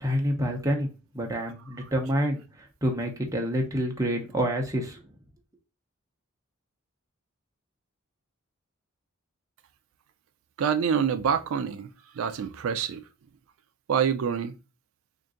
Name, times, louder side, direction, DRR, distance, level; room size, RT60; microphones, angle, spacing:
voice 1, 0.0-0.9 1.1-2.4 2.8-5.0, equal, 15° right, 0.8 m, -27 dB
voice 2, 10.6-13.1 13.9-14.5, right 7 dB, 75° right, 0.4 m, -27 dB
3.7 x 2.6 x 3.7 m
head